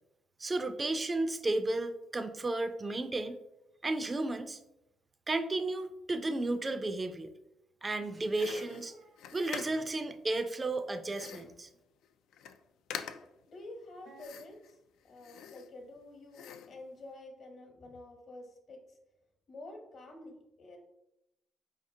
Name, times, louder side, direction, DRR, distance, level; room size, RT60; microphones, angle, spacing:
voice 1, 0.4-3.4 3.8-4.6 5.3-7.3 7.8-8.9 9.3-11.7, right 2 dB, 25° right, 9 dB, 0.4 m, -33 dB
sound 1, 8.3-10.0 11.1-11.6 12.0-12.1 12.3-12.6 12.9-13.4 14.2-14.7 15.2-16.0 16.3-16.8, left 8 dB, 85° left, 0.3 m, -45 dB
sound 2, 8.5-9.8 11.7-11.8 14.0-14.3, right 4 dB, 75° right, 0.8 m, -57 dB
voice 2, 13.4-14.8 15.0-19.0 19.5-20.8, left 2 dB, 55° left, 3 dB, 1.0 m, -49 dB
4.8 x 3.6 x 2.7 m, 0.86 s
cardioid pair, 90°, 0 cm